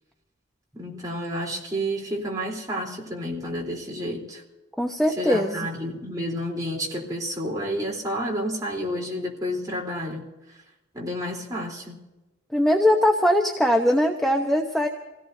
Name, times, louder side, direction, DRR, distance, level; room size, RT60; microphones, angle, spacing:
voice 1, 0.7-4.4 5.2-10.3 10.9-12.0, equal, 20° right, 3.8 m, -30 dB
voice 2, 4.8-5.7 12.5-14.9, left 1 dB, ahead, 0.9 m, -21 dB
28.0 x 17.5 x 2.8 m
head